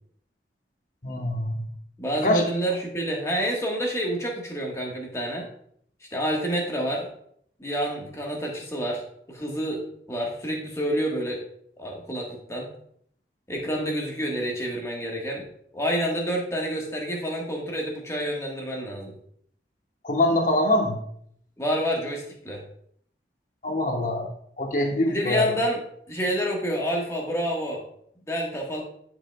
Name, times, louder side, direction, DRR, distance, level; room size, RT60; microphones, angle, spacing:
voice 1, 1.0-1.7 2.2-2.4 20.0-21.0 23.6-24.3 24.6-25.5, left 1 dB, 45° left, 2 dB, 1.2 m, -24 dB
voice 2, 2.0-5.5 6.1-7.1 7.6-11.4 11.8-12.7 13.5-15.5 15.7-19.1 21.6-22.6 25.1-25.8 26.1-27.8 28.3-28.8, equal, 15° left, -1 dB, 1.4 m, -28 dB
11.5 x 5.0 x 2.3 m, 0.67 s
head